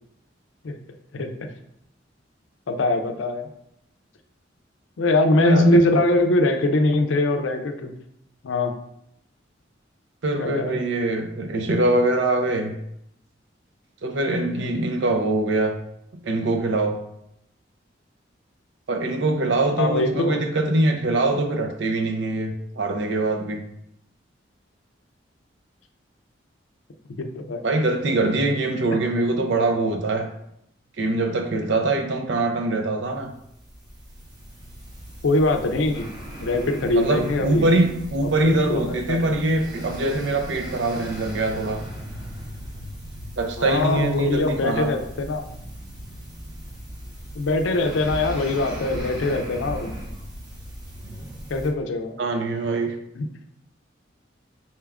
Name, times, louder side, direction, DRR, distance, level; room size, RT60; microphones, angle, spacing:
voice 1, 1.1-1.5 2.7-3.5 5.0-7.9 8.4-8.7 10.4-10.8 14.5-14.8 19.8-20.4 27.2-27.6 35.2-36.1 36.4-37.6 38.4-39.2 43.6-45.4 47.4-49.9 51.5-52.1 53.2-53.3, left 2 dB, 85° left, 6 dB, 0.5 m, -22 dB
voice 2, 5.4-5.8 10.2-12.7 14.0-15.7 16.2-17.0 18.9-23.6 27.6-30.3 31.0-33.3 36.9-41.8 43.4-44.9 52.2-53.0, right 2 dB, 70° right, 4 dB, 0.5 m, -23 dB
sound 1, 33.2-51.7, equal, 20° right, 0.7 m, -38 dB
4.3 x 2.3 x 3.4 m, 0.75 s
head